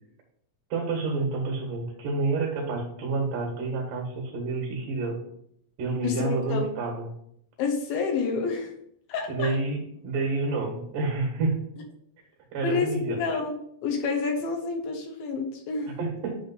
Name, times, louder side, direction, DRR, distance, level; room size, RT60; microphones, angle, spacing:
voice 1, 0.7-5.2 5.8-7.1 9.3-11.6 12.5-13.2 16.0-16.3, right 3 dB, 65° right, -1 dB, 3.1 m, -29 dB
voice 2, 6.0-6.7 7.6-8.7 9.1-9.6 12.6-13.5 13.8-16.0, left 4 dB, 80° left, 2 dB, 2.9 m, -28 dB
8.7 x 3.5 x 5.4 m, 0.70 s
omnidirectional pair, 4.2 m